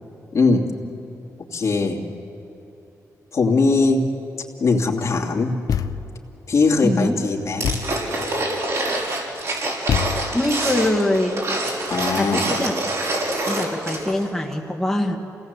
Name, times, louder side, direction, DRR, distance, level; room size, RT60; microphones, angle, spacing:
voice 1, 0.3-0.7 1.5-2.0 3.3-4.0 4.6-5.5 6.5-7.7 11.9-12.4, left 3 dB, 55° left, 0 dB, 2.7 m, -20 dB
Thump thud, 5.7-6.2 7.6-8.1 9.9-10.6, left 8 dB, 75° left, 0.8 m, -25 dB
voice 2, 6.8-7.2 10.3-11.5 12.2-12.7 13.5-15.2, left 1 dB, 5° left, 0 dB, 2.0 m, -23 dB
sound 1, 7.6-14.2 14.5-14.6, right 2 dB, 55° right, 5.6 m, -26 dB
27.5 x 18.5 x 8.3 m, 3.0 s
cardioid pair, 100°, 6 cm